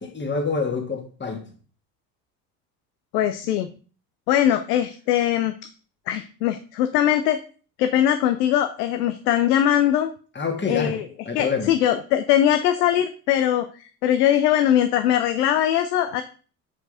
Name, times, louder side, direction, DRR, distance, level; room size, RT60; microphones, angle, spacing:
voice 1, 0.0-1.5 10.4-11.0 11.3-11.7, left 4 dB, 25° left, 1.9 m, -26 dB
voice 2, 3.1-3.7 4.3-5.6 6.1-7.4 7.8-10.1 10.7-16.2, left 11 dB, 80° left, 0.7 m, -21 dB
5.2 x 5.0 x 4.9 m
hypercardioid pair, 70°, 47 cm